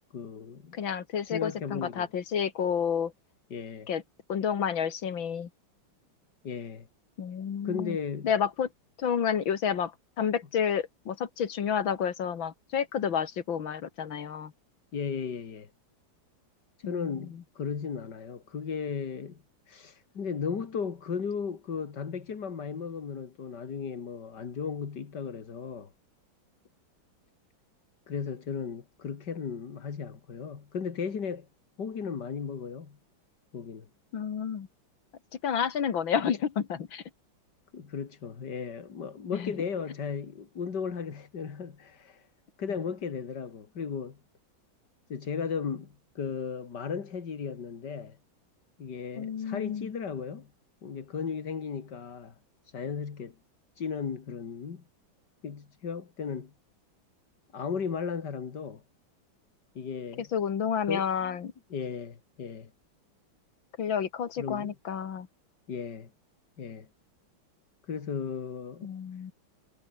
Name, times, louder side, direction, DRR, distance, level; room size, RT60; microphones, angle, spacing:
voice 1, 0.1-0.8 1.3-2.1 3.5-3.9 6.4-6.9 7.6-8.3 14.9-15.7 16.8-19.4 19.7-25.9 28.1-31.5 31.8-33.0 33.5-33.9 37.7-42.3 42.6-44.2 45.1-48.2 48.8-50.5 50.8-52.4 52.6-53.4 53.8-54.8 55.4-56.5 57.5-58.8 59.7-60.3 60.9-61.4 61.7-62.7 64.4-64.7 65.7-66.1 66.6-66.9 67.9-68.9, left 6 dB, 60° left, 2.7 m, -35 dB
voice 2, 0.7-3.1 3.9-4.0 4.3-5.5 7.2-8.0 8.2-8.7 9.0-9.9 10.2-14.5 16.8-17.1 34.1-34.7 35.4-37.0 39.3-39.5 49.2-49.9 60.2-61.5 63.8-65.3 68.8-69.3, left 7 dB, 75° left, 2.5 m, -30 dB
omnidirectional pair, 2.1 m